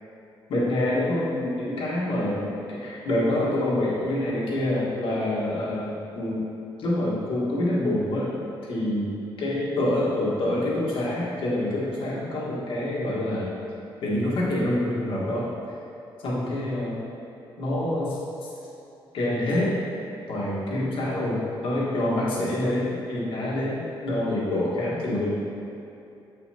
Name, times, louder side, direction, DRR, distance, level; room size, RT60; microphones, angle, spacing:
voice 1, 0.5-6.4 6.8-8.3 8.6-13.5 14.0-15.5 16.2-17.0 17.6-18.2 19.1-19.8 20.3-25.3, left 1 dB, 70° left, -7 dB, 1.6 m, -26 dB
8.3 x 5.5 x 2.9 m, 2.7 s
cardioid pair, 155°, 9 cm